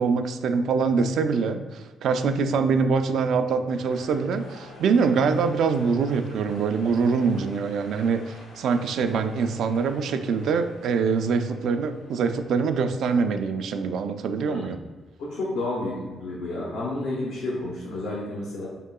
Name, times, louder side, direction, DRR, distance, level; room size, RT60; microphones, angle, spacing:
voice 1, 0.0-14.8, right 5 dB, 75° right, 8 dB, 0.3 m, -24 dB
sound 1, 3.7-13.1, left 1 dB, 70° left, 1.2 m, -48 dB
voice 2, 14.4-14.7 15.2-18.7, left 2 dB, 85° left, -6 dB, 0.9 m, -31 dB
4.7 x 3.7 x 2.2 m, 1.3 s
cardioid pair, 90°, 0 cm